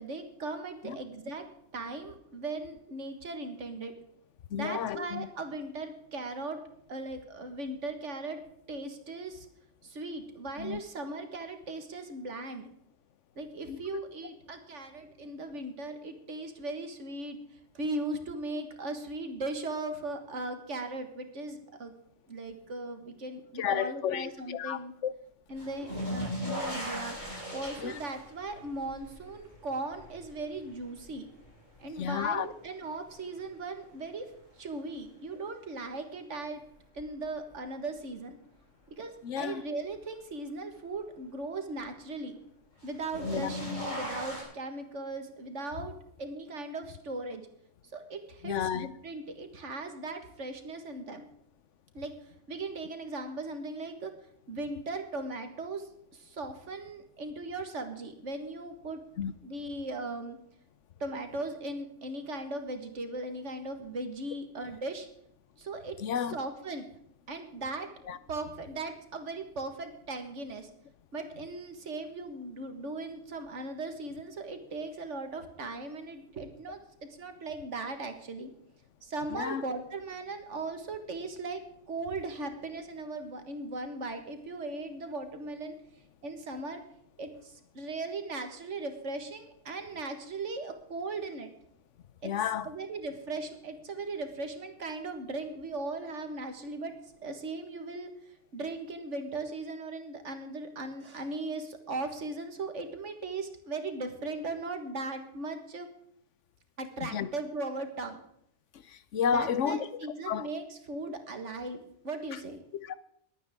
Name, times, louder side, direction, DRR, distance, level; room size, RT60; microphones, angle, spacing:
voice 1, 0.0-1.4 1.7-3.9 4.5-6.6 6.9-8.4 8.7-9.5 9.8-12.7 13.4-17.4 17.7-21.9 22.3-24.9 25.5-27.2 27.5-31.3 31.8-36.6 36.9-38.4 39.0-42.4 42.8-47.5 47.9-51.3 51.9-52.1 52.5-54.1 54.5-59.1 59.4-60.4 61.0-65.1 65.6-66.9 67.3-67.9 68.3-70.7 71.1-76.8 77.2-78.5 79.0-81.6 81.9-85.8 86.2-86.8 87.2-91.5 92.2-92.3 92.6-96.9 97.2-98.1 98.5-105.9 106.8-108.2 109.3-112.6, right 2 dB, 90° right, 2.0 m, -38 dB
voice 2, 4.5-5.3 10.6-10.8 13.7-13.8 23.6-25.1 27.8-27.9 32.0-32.5 39.2-39.6 43.2-43.5 48.4-48.9 59.2-59.3 66.0-66.4 68.1-68.2 79.3-79.6 92.2-92.7 107.0-107.3 108.9-109.8 110.3-110.5 112.8-112.9, left 8 dB, 85° left, 1.1 m, -31 dB
sound 1, 25.6-32.6 33.0-33.7 35.3-35.4 37.0-37.1 42.8-44.4, equal, 40° left, 7.0 m, -38 dB
21.5 x 9.1 x 3.6 m
omnidirectional pair, 1.2 m